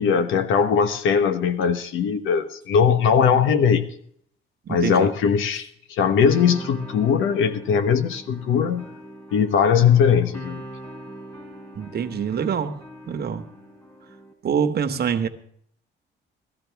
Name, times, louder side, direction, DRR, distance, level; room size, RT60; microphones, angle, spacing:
voice 1, 0.0-3.8 4.7-8.9 9.3-10.6, left 7 dB, 85° left, 10 dB, 1.1 m, -20 dB
voice 2, 4.7-5.1 11.7-12.8 13.1-13.5 14.4-15.3, right 7 dB, 55° right, 9 dB, 1.1 m, -25 dB
sound 1, 6.3-14.3, equal, 15° left, 4.0 m, -41 dB
17.0 x 13.0 x 3.4 m, 0.66 s
cardioid pair, 90°, 20 cm